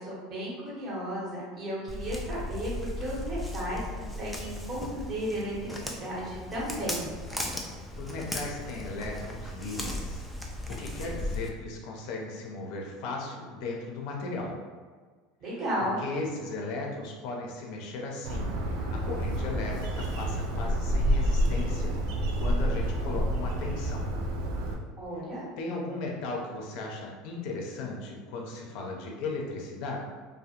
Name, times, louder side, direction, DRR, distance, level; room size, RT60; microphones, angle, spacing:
voice 1, 0.0-2.7 3.0-7.1 15.4-16.0 25.0-25.4, equal, 35° right, -6 dB, 1.1 m, -34 dB
Walk footsteps, 1.9-11.5, left 1 dB, 5° left, 0.4 m, -37 dB
voice 2, 8.0-10.2 10.8-14.5 15.8-18.5 18.9-21.9 22.4-24.1 25.6-30.0, left 3 dB, 65° left, 0 dB, 0.5 m, -36 dB
Bird, 18.2-24.7, equal, 70° right, 0.4 m, -28 dB
2.3 x 2.1 x 2.8 m, 1.5 s
supercardioid pair, 105°, 0 cm